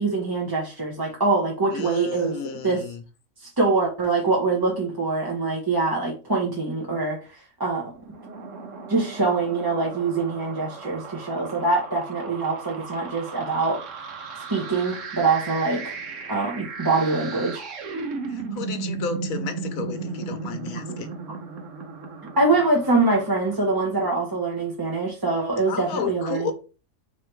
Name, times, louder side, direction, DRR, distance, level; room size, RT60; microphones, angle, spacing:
voice 1, 0.0-2.3 2.6-2.8 3.4-7.2 7.6-7.9 8.9-13.8 14.5-16.0 16.3-17.6 22.4-26.5, right 3 dB, 20° right, 0.7 m, -24 dB
voice 2, 1.7-3.0 18.3-21.1 25.7-26.5, left 6 dB, 90° left, 1.2 m, -32 dB
sound 1, 8.0-24.3, right 5 dB, 70° right, 1.2 m, -36 dB
3.8 x 3.1 x 4.4 m
omnidirectional pair, 1.4 m